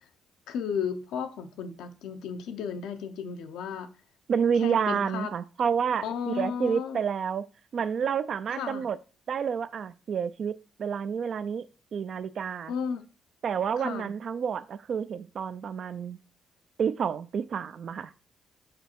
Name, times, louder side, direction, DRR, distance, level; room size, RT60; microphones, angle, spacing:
voice 1, 0.5-3.9 4.6-5.3 6.0-7.0 8.5-8.8 12.7-13.0 13.8-14.1, left 7 dB, 85° left, 0.8 m, -34 dB
voice 2, 4.3-7.4 7.7-9.0 9.3-11.7 11.9-12.7 13.4-16.2 16.8-18.1, right 7 dB, 55° right, 0.5 m, -29 dB
5.1 x 4.1 x 4.5 m
cardioid pair, 90°, 0 cm